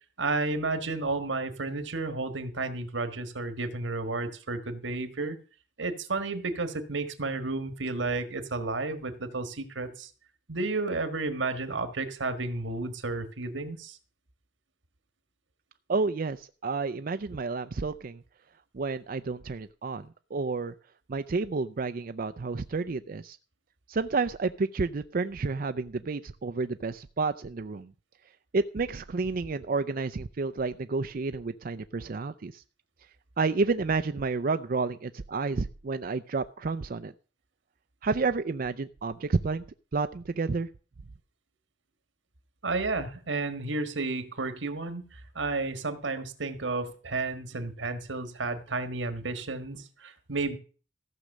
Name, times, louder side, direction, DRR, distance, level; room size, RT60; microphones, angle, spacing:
voice 1, 0.2-5.4 5.8-10.1 10.5-14.0 42.6-50.6, right 3 dB, 90° right, 10 dB, 1.6 m, -32 dB
voice 2, 15.9-18.2 18.7-20.7 21.1-23.4 23.9-27.9 28.5-32.6 33.4-37.1 38.0-39.6 39.9-40.7, right 4 dB, 50° right, 10 dB, 0.5 m, -30 dB
15.0 x 6.2 x 6.5 m, 0.38 s
head